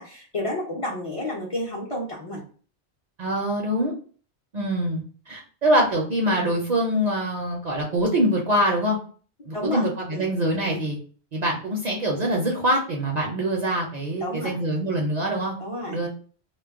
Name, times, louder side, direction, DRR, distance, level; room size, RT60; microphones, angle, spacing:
voice 1, 0.0-2.4 9.5-9.8 10.1-10.2 10.6-10.8 14.2-14.6 15.6-16.0, left 1 dB, 40° left, -4 dB, 0.5 m, -30 dB
voice 2, 3.2-3.9 4.5-9.0 9.4-11.0 11.3-15.6 15.9-16.1, right 1 dB, 50° right, -2 dB, 0.5 m, -24 dB
2.2 x 2.1 x 3.4 m, 0.42 s
omnidirectional pair, 1.1 m